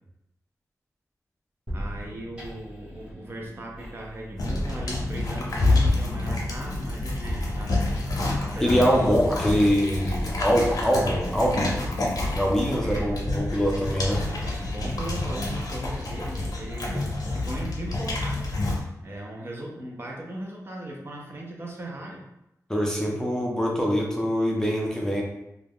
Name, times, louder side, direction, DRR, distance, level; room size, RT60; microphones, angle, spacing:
sound 1, 1.7-17.3, equal, 20° right, 1.1 m, -40 dB
voice 1, 1.7-7.8 8.4-9.2 12.8-13.1 14.4-18.7 19.0-22.2, right 1 dB, 40° right, -1 dB, 0.5 m, -38 dB
sound 2, 4.4-18.8, left 2 dB, 75° left, 0.6 m, -28 dB
voice 2, 8.6-11.8 12.3-14.3 22.7-25.2, equal, 10° left, -2 dB, 0.5 m, -24 dB
2.4 x 2.1 x 3.4 m, 0.86 s
wide cardioid pair, 95°, 6 cm